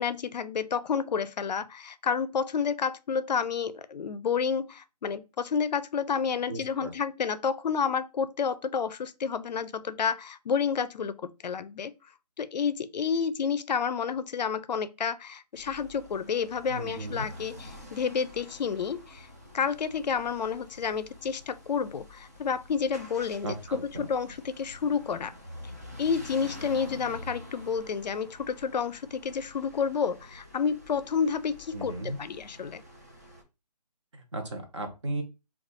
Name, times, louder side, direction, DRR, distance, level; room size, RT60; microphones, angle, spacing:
voice 1, 0.0-11.9 12.4-19.3 19.5-25.3 26.0-32.8, left 6 dB, 80° left, 0.4 m, -30 dB
voice 2, 6.5-6.9 16.7-17.3 23.4-24.0 31.7-32.2 34.1-35.2, right 2 dB, 45° right, 0.8 m, -36 dB
sound 1, 15.5-33.4, left 1 dB, 25° right, 0.4 m, -48 dB
2.6 x 2.3 x 3.9 m
hypercardioid pair, 170°, 21 cm